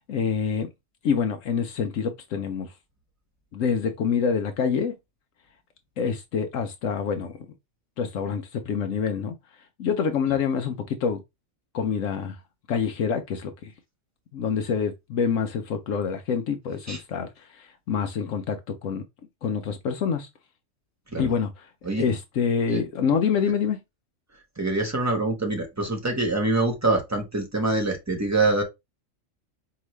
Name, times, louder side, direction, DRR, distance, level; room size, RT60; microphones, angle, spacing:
voice 1, 0.1-0.7 1.0-2.7 3.5-4.9 6.0-7.3 8.0-9.3 9.8-11.2 11.7-12.4 12.7-13.7 14.3-18.6 18.8-19.0 19.4-20.3 21.2-21.5 22.0-23.8, left 6 dB, 75° left, 1.0 m, -26 dB
voice 2, 24.6-28.6, right 2 dB, 15° right, 1.2 m, -25 dB
4.7 x 2.9 x 3.2 m
omnidirectional pair, 1.4 m